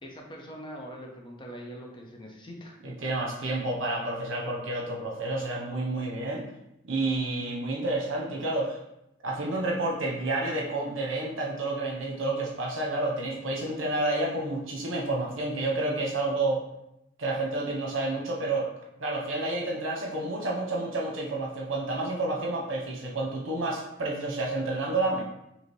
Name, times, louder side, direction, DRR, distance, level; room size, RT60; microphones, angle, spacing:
voice 1, 0.0-2.8, equal, 25° left, 0 dB, 0.7 m, -42 dB
voice 2, 2.8-6.4 6.9-8.8 9.2-16.6 17.2-18.7 19.0-25.2, right 2 dB, 85° right, -1 dB, 0.9 m, -30 dB
5.0 x 2.8 x 3.1 m, 0.84 s
head